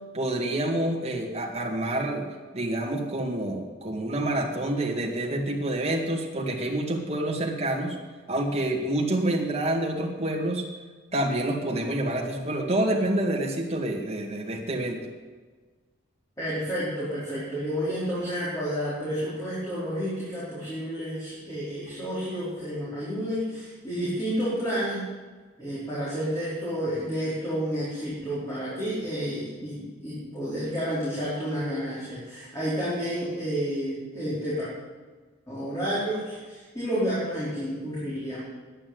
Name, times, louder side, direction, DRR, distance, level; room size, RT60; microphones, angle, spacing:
voice 1, 0.1-2.2 2.5-8.0 8.3-10.7 11.1-15.0, right 1 dB, 30° right, 0 dB, 2.0 m, -27 dB
voice 2, 16.4-25.1 25.6-34.7 35.5-38.4, equal, 15° left, -10 dB, 4.2 m, -30 dB
9.8 x 8.8 x 9.4 m, 1.4 s
head